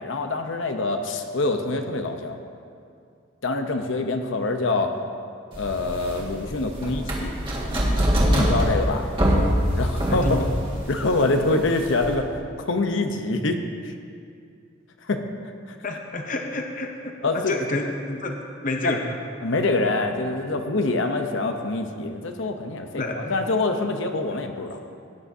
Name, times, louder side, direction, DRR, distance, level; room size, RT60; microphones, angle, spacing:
voice 1, 0.0-2.4 3.4-4.9 5.6-7.3 8.4-9.1 9.8-10.4 10.9-12.3 12.6-13.6 13.8-13.9 15.0-15.2 15.7-15.8 17.2-17.5 18.8-19.0 19.4-24.8, left 2 dB, 70° left, 5 dB, 0.8 m, -25 dB
sound 1, 5.5-12.1, equal, 25° right, 1.7 m, -24 dB
voice 2, 10.1-10.5 11.2-11.3 15.8-16.9 17.3-18.4 18.6-19.1 22.9-23.3, left 2 dB, 40° left, 3 dB, 0.7 m, -28 dB
17.5 x 9.6 x 2.7 m, 2.4 s
head